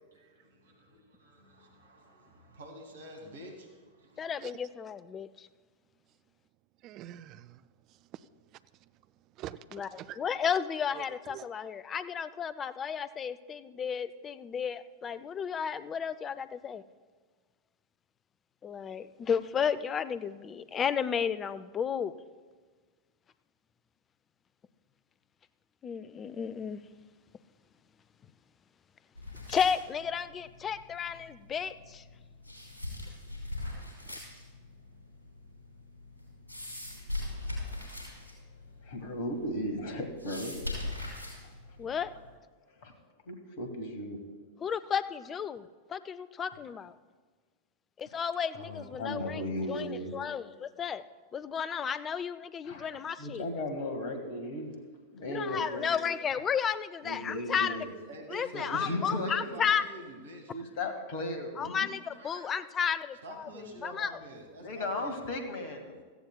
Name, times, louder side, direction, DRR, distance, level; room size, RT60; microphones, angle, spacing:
voice 1, 0.1-4.3 58.1-60.6 62.1-62.6 63.2-65.3 65.9-66.0, right 1 dB, 65° right, 2 dB, 1.9 m, -48 dB
voice 2, 4.2-5.3 9.7-9.9 10.2-16.8 18.6-22.1 25.8-26.8 29.5-32.0 41.8-42.1 44.6-46.9 48.0-51.0 51.3-53.4 55.2-57.8 58.3-59.8 61.6-63.5 63.8-64.1, left 7 dB, 25° left, 14 dB, 0.5 m, -33 dB
voice 3, 6.8-7.6 8.1-8.2 9.4-10.2 10.9-11.5, right 13 dB, 40° right, 13 dB, 0.4 m, -45 dB
sound 1, 29.2-42.3, left 2 dB, 75° left, 4.2 m, -42 dB
voice 4, 38.8-40.6 42.8-42.9 43.3-44.2 48.5-50.2 52.6-52.9 53.2-54.8 55.1-55.9 57.0-57.9 58.5-59.9 60.5-61.9 64.6-66.0, left 1 dB, 50° left, 6 dB, 1.8 m, -36 dB
17.0 x 14.0 x 2.3 m, 1.5 s
figure-of-eight pair, 90°, 0 cm